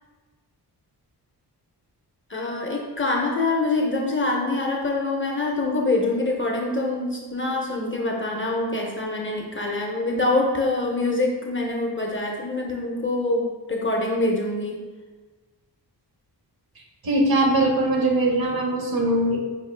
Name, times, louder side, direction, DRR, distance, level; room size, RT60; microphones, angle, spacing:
voice 1, 2.3-14.8, left 2 dB, 30° left, 0 dB, 0.4 m, -25 dB
voice 2, 17.0-19.4, right 1 dB, 60° right, 1 dB, 0.7 m, -21 dB
4.8 x 2.3 x 3.1 m, 1.3 s
wide cardioid pair, 155°, 41 cm